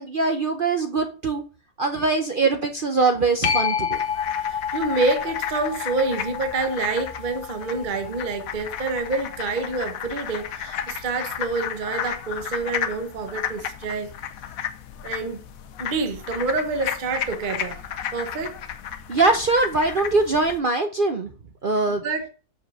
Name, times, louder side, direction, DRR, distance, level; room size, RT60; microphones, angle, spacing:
voice 1, 0.0-1.4 1.8-4.0 19.1-21.3 21.6-22.1, right 3 dB, 55° right, 0.6 m, -22 dB
sound 1, 3.4-10.6 16.1-16.2, left 7 dB, 85° left, 1.5 m, -30 dB
sound 2, 3.9-20.6, left 9 dB, 65° left, 1.1 m, -33 dB
voice 2, 4.4-14.1 15.0-15.4 15.8-17.8 18.1-18.6 22.0-22.3, right 3 dB, 35° right, 1.0 m, -27 dB
6.3 x 5.1 x 6.4 m
omnidirectional pair, 1.8 m